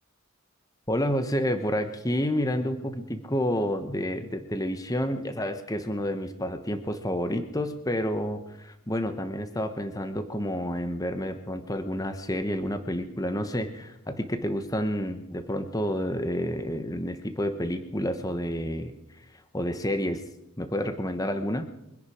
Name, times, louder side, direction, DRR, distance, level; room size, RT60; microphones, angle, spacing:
voice 1, 0.9-19.0 19.5-20.2 20.6-21.7, equal, 15° left, 8 dB, 1.1 m, -29 dB
24.0 x 10.5 x 5.0 m, 0.85 s
head